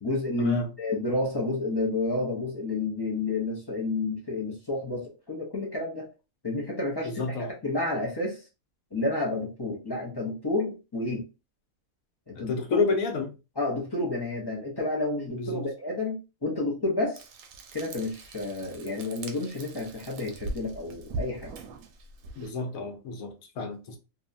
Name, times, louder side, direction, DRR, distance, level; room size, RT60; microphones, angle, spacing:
voice 1, 0.0-6.1 6.4-7.2 7.6-8.4 8.9-11.3 12.3-12.9 13.6-17.3 17.7-21.6, left 2 dB, 35° left, 0.4 m, -30 dB
voice 2, 7.0-7.5 12.3-13.3 15.4-15.7 22.4-24.0, left 4 dB, 75° left, 1.1 m, -30 dB
Frying (food), 17.1-22.5, right 2 dB, 90° right, 1.0 m, -41 dB
2.8 x 2.2 x 2.5 m
omnidirectional pair, 1.5 m